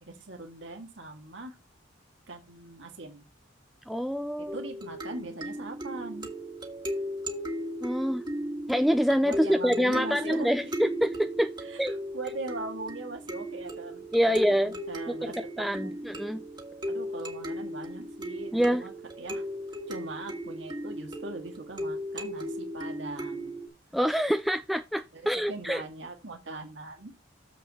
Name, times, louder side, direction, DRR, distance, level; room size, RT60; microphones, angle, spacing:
voice 1, 0.0-1.6 2.3-3.2 4.5-6.3 9.2-10.7 11.7-16.0 16.9-18.9 19.2-19.4 19.9-23.5 25.1-25.2 25.5-27.1, right 2 dB, 75° right, 1.9 m, -41 dB
voice 2, 3.9-4.6 7.8-8.2 8.7-11.5 11.8-11.9 14.1-14.7 15.1-16.4 18.5-18.8 23.9-25.8, equal, ahead, 0.3 m, -26 dB
sound 1, 4.5-23.7, equal, 25° right, 1.6 m, -36 dB
7.3 x 5.7 x 4.2 m
head